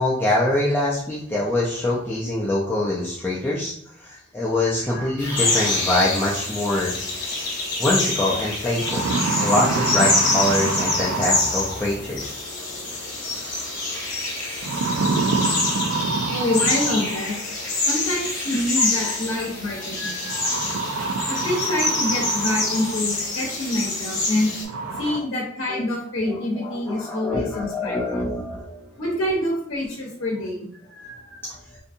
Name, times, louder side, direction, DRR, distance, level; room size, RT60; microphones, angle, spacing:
voice 1, 0.0-3.7 4.0-6.9 7.8-9.1 9.4-12.4 18.8-19.4 20.0-20.6 25.7-25.8 26.3-28.8 30.9-31.8, left 1 dB, 10° left, -6 dB, 0.3 m, -25 dB
sound 1, 5.2-24.6, left 2 dB, 40° left, 0.9 m, -26 dB
sound 2, 8.0-8.1 8.6-12.0 13.4-13.8 14.6-17.4 18.7-18.8 20.3-23.2 23.6-23.7 24.3-24.4 24.6-25.2, right 4 dB, 85° right, 0.4 m, -27 dB
voice 2, 16.3-17.4 17.8-20.3 21.3-24.5 25.0-28.1 29.0-30.7, left 1 dB, 75° left, -2 dB, 0.7 m, -26 dB
2.6 x 2.4 x 2.6 m, 0.69 s
head